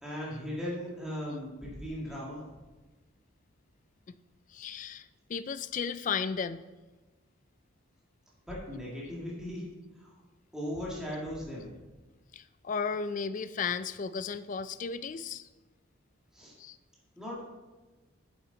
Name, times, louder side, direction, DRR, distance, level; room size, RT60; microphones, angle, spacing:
voice 1, 0.0-2.6 8.5-9.7 10.0-10.2 10.5-11.8 16.3-16.6 17.2-17.5, equal, 5° right, -6 dB, 1.9 m, -38 dB
voice 2, 4.5-6.6 12.3-15.5 16.6-16.8, left 6 dB, 40° left, 13 dB, 0.3 m, -34 dB
8.3 x 7.6 x 4.0 m, 1.2 s
head